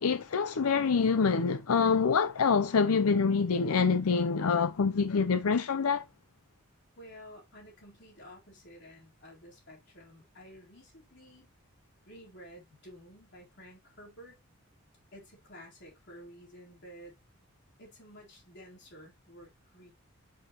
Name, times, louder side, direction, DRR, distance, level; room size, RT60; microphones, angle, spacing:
voice 1, 0.0-6.0, left 5 dB, 75° left, 0.6 m, -26 dB
voice 2, 7.0-11.5 12.0-14.4 15.1-17.2 17.8-19.9, equal, 50° left, 3.8 m, -52 dB
8.8 x 6.3 x 3.0 m
head